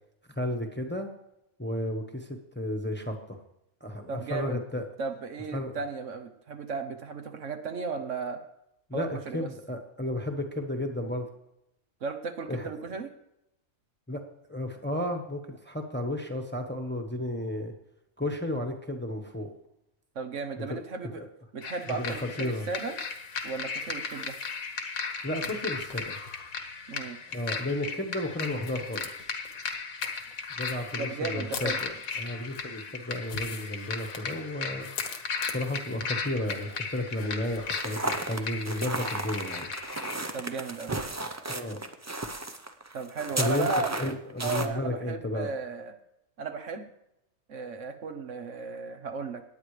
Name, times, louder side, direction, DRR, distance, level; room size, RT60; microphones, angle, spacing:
voice 1, 0.4-1.1 1.6-3.4 3.8-4.9 5.5-5.8 8.9-11.3 12.5-13.0 14.1-14.2 14.5-17.7 18.2-19.5 20.7-20.8 21.1-21.3 21.9-22.1 22.4-22.7 25.2-26.2 27.3-29.1 30.6-34.9 35.4-39.7 41.5-41.8 43.4-45.5, left 1 dB, 10° left, 4 dB, 1.1 m, -33 dB
voice 2, 4.1-4.6 5.0-8.4 8.9-9.5 12.0-13.1 20.1-21.2 21.5-23.0 23.4-24.4 26.9-27.2 30.9-31.8 40.3-40.9 42.9-44.1 44.4-45.9 46.4-46.9 47.5-49.4, right 4 dB, 65° right, 7 dB, 1.3 m, -35 dB
sound 1, 21.6-40.2, left 5 dB, 80° left, 1.6 m, -36 dB
sound 2, 37.7-44.7, right 2 dB, 20° right, 0.4 m, -34 dB
18.5 x 9.2 x 3.3 m, 0.83 s
omnidirectional pair, 1.4 m